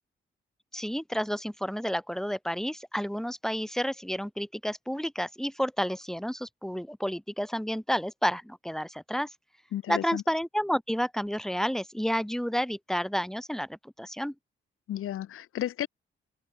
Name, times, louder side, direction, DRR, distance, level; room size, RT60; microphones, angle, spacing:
voice 1, 0.7-9.3 9.9-14.3, equal, ahead, 6.6 m, -30 dB
voice 2, 9.7-10.2 14.9-15.9, left 12 dB, 85° left, 1.8 m, -33 dB
open air
cardioid pair, 85°, 21 cm